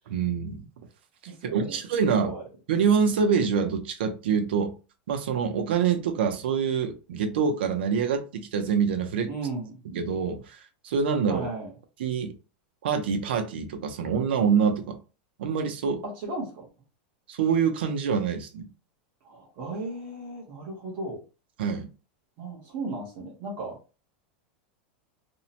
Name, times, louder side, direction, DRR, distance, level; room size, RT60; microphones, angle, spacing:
voice 1, 0.1-0.7 1.5-2.3 2.7-4.7 5.1-9.3 9.9-10.6 10.8-11.5 12.0-12.3 12.8-15.0 15.4-16.0 17.3-18.7 21.6-21.9, right 6 dB, 80° right, 0.6 m, -25 dB
voice 2, 1.3-1.8 2.2-2.4 9.3-9.8 11.3-11.7 16.0-16.7 19.2-21.2 22.4-23.8, right 2 dB, 35° right, 0.8 m, -35 dB
2.7 x 2.1 x 2.7 m
supercardioid pair, 180°, 6 cm